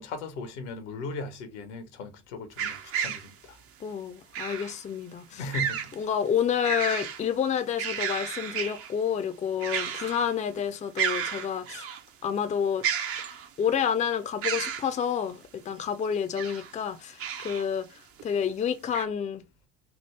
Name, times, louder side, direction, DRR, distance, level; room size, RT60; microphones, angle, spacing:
voice 1, 0.0-3.6 5.3-5.9, left 3 dB, 75° left, 0.8 m, -37 dB
sound 1, 2.6-3.3 4.3-4.8 5.5-6.0 6.4-7.2 7.6-8.9 9.6-10.3 10.6-10.7 11.0-12.0 12.8-13.7 14.4-14.9 16.1-16.7 17.2-17.7 18.2-18.3 18.9-19.1, right 8 dB, 40° right, 0.6 m, -32 dB
voice 2, 3.8-5.5 6.0-11.9 12.2-12.8 13.6-17.9 18.2-19.4, left 8 dB, 20° left, 0.4 m, -29 dB
3.4 x 2.0 x 3.1 m
hypercardioid pair, 60°, 36 cm